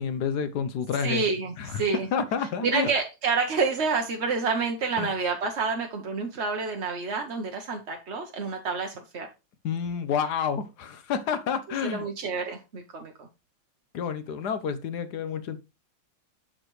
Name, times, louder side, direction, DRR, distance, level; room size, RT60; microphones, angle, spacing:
voice 1, 0.0-1.2 1.6-1.8 2.1-2.9 5.0-5.1 9.6-12.0 13.9-15.6, left 7 dB, 65° left, 1.2 m, -29 dB
voice 2, 1.0-2.1 2.6-9.3 11.8-13.3, right 4 dB, 50° right, 0.9 m, -28 dB
7.9 x 6.7 x 3.1 m
omnidirectional pair, 2.3 m